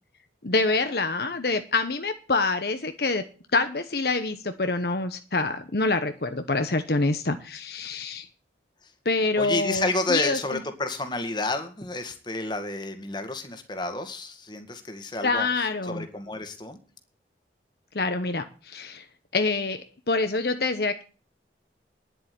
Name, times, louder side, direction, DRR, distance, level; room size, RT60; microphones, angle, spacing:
voice 1, 0.4-3.2 3.5-8.3 9.0-10.6 15.2-16.1 17.9-19.0 19.3-21.0, left 3 dB, 60° left, 8 dB, 1.0 m, -26 dB
voice 2, 9.4-15.5 15.8-16.8, left 2 dB, 25° left, 7 dB, 1.9 m, -30 dB
10.5 x 7.8 x 8.6 m, 0.37 s
head